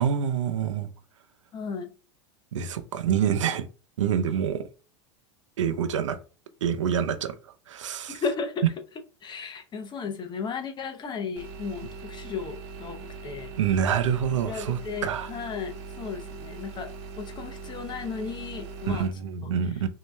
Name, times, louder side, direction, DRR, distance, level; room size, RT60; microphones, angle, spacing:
voice 1, 0.0-0.9 2.5-3.7 4.0-4.7 5.6-6.2 6.6-7.3 7.7-8.2 13.6-15.3 18.9-19.9, right 8 dB, 75° right, 0.5 m, -26 dB
voice 2, 1.5-1.9 3.1-3.2 8.1-8.7 9.2-13.5 14.4-16.9 17.2-19.1, left 5 dB, 30° left, 0.8 m, -35 dB
sound 1, 11.4-19.1, right 4 dB, 60° right, 1.0 m, -41 dB
5.3 x 2.8 x 2.2 m
hypercardioid pair, 90°, 16 cm